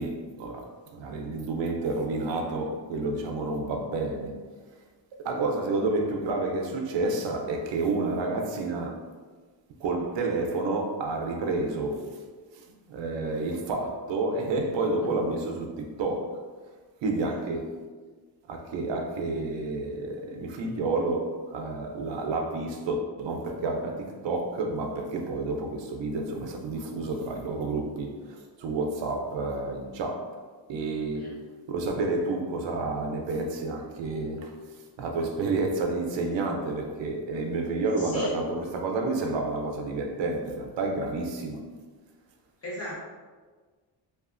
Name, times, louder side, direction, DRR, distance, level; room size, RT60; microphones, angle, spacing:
voice 1, 0.0-4.4 5.2-9.0 9.8-12.2 12.5-16.5 17.0-17.8 18.5-30.4 30.7-31.3 31.7-41.6, right 3 dB, 80° right, 3 dB, 0.5 m, -30 dB
voice 2, 38.0-38.3 42.6-43.0, left 1 dB, 35° left, -7 dB, 0.9 m, -36 dB
2.9 x 2.3 x 2.4 m, 1.4 s
wide cardioid pair, 150°, 43 cm